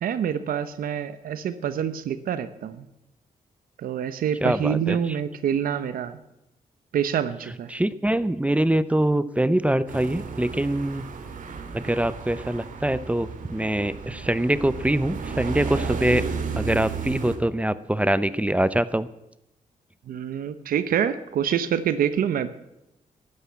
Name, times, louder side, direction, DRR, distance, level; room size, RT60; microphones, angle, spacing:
voice 1, 0.0-2.9 3.8-6.2 6.9-7.7 20.1-22.5, right 8 dB, 90° right, 12 dB, 0.9 m, -26 dB
voice 2, 4.4-5.2 7.7-11.0 11.7-16.2 16.6-19.1, right 1 dB, 10° right, 15 dB, 0.6 m, -24 dB
sound 1, 9.9-17.4, right 5 dB, 65° right, 2.1 m, -33 dB
12.5 x 9.8 x 8.5 m, 0.86 s
cardioid pair, 95°, 14 cm